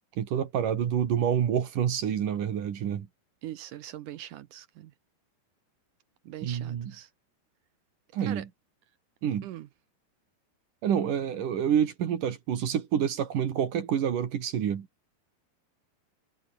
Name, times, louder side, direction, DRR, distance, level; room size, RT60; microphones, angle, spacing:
voice 1, 0.2-3.1 6.4-6.9 8.1-8.5 9.2-9.5 10.8-14.9, right 9 dB, 55° right, 3.3 m, -28 dB
voice 2, 3.4-4.9 6.2-7.1 8.3-8.4 9.4-9.7, right 13 dB, 75° right, 1.9 m, -41 dB
omnidirectional pair, 4.9 m